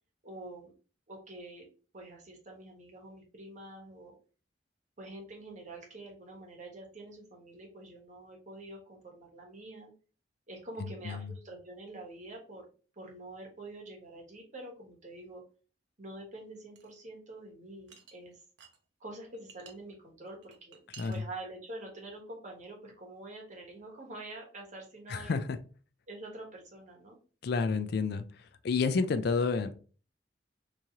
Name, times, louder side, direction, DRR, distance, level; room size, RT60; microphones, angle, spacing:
voice 1, 0.2-0.7 1.1-1.7 1.9-4.1 5.0-9.9 10.5-12.6 13.0-15.4 16.0-18.4 19.0-20.8 21.1-25.4 26.1-27.2, right 2 dB, 40° right, -1 dB, 1.2 m, -46 dB
voice 2, 10.8-11.3 21.0-21.1 25.1-25.6 27.4-28.2 28.6-29.8, left 4 dB, 60° left, 9 dB, 0.4 m, -30 dB
sound 1, 16.8-16.9 17.9-18.8 19.1-19.7 20.3-21.2, right 7 dB, 75° right, 0.7 m, -53 dB
3.1 x 2.8 x 3.5 m, 0.39 s
head